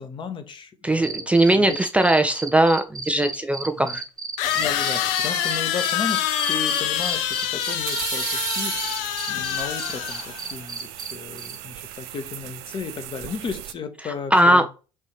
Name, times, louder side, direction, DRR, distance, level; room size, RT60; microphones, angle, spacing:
voice 1, 0.0-1.3 1.6-1.8 3.8-4.0 4.5-14.7, left 5 dB, 35° left, 1.0 m, -34 dB
voice 2, 0.8-4.0 14.3-14.6, right 1 dB, 10° right, 0.4 m, -19 dB
sound 1, 1.0-11.1 11.4-11.6, right 4 dB, 25° right, 1.1 m, -33 dB
sound 2, 2.8-2.9 4.4-10.5, left 10 dB, 60° left, 0.6 m, -26 dB
sound 3, 7.0-13.7, right 14 dB, 60° right, 0.5 m, -35 dB
5.6 x 2.7 x 3.1 m
figure-of-eight pair, 65°, 15 cm